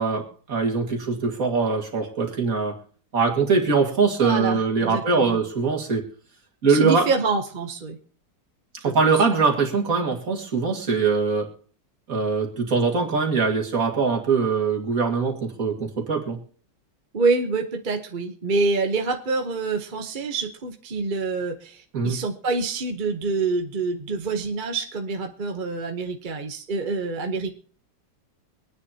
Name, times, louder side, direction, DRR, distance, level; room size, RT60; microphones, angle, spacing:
voice 1, 0.0-2.8 3.1-6.1 6.6-7.1 8.8-11.5 12.1-16.4 21.9-22.2, right 4 dB, 50° right, 2 dB, 2.4 m, -22 dB
voice 2, 4.2-5.4 6.7-8.0 8.8-9.2 17.1-27.5, right 4 dB, 35° right, 4 dB, 0.9 m, -26 dB
24.5 x 9.7 x 2.8 m, 0.43 s
omnidirectional pair, 1.9 m